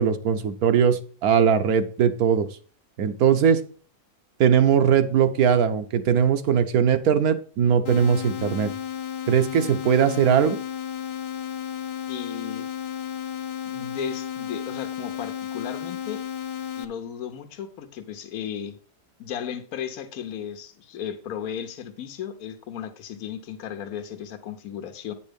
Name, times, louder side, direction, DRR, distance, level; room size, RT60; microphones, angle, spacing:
voice 1, 0.0-2.5 3.0-3.6 4.4-8.7 9.3-10.6, right 7 dB, 70° right, 9 dB, 1.2 m, -20 dB
sound 1, 7.8-16.8, left 9 dB, 50° left, 0.8 m, -33 dB
voice 2, 12.1-12.7 13.7-16.2 16.8-18.8 19.2-25.1, left 8 dB, 65° left, 7 dB, 1.4 m, -35 dB
9.1 x 5.5 x 5.2 m, 0.41 s
omnidirectional pair, 1.7 m